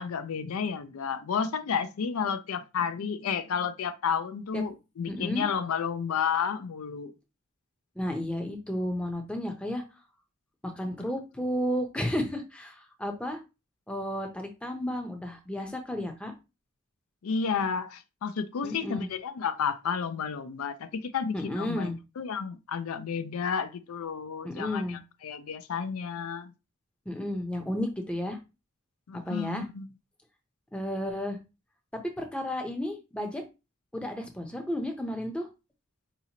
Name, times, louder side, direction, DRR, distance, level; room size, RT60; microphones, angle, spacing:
voice 1, 0.0-7.1 17.2-26.5 29.1-29.9, left 6 dB, 90° left, 0.4 m, -31 dB
voice 2, 5.1-5.4 8.0-9.8 10.6-13.4 13.9-16.3 18.6-19.1 21.3-22.0 24.4-25.0 27.1-28.4 29.1-29.7 30.7-31.4 32.2-33.4 33.9-35.5, left 1 dB, 5° left, 0.6 m, -32 dB
4.8 x 2.8 x 2.8 m
head